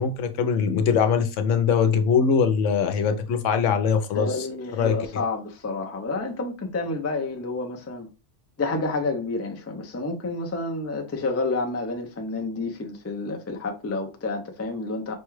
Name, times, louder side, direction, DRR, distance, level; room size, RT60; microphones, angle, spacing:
voice 1, 0.0-4.5 4.7-5.2, left 6 dB, 80° left, 1.0 m, -22 dB
voice 2, 4.1-8.1 8.6-15.1, left 3 dB, 25° left, 0.3 m, -29 dB
5.1 x 2.3 x 3.1 m
omnidirectional pair, 1.3 m